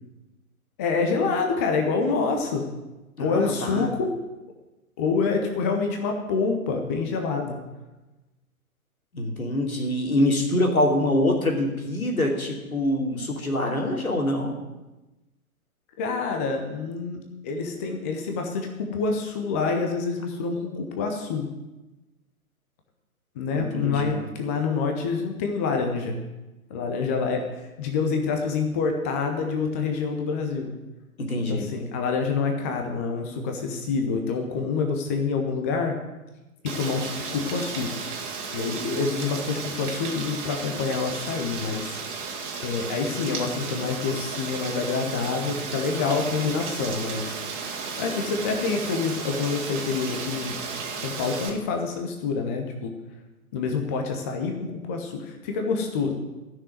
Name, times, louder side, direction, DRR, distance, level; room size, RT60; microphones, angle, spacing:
voice 1, 0.8-2.6 3.2-4.1 5.0-7.6 16.0-21.5 23.4-26.2 26.7-30.7 31.5-36.0 36.6-37.9 38.5-42.0 42.6-47.4 48.0-50.6 51.0-52.9 53.5-56.1, left 4 dB, 10° left, 3 dB, 0.5 m, -27 dB
voice 2, 3.2-3.9 9.1-14.6 23.5-24.2 31.2-31.7, left 1 dB, 70° left, 1 dB, 3.0 m, -25 dB
Rain, 36.7-51.5, right 5 dB, 35° right, 2.1 m, -34 dB
14.5 x 6.3 x 9.0 m, 1.1 s
figure-of-eight pair, 120°, 43 cm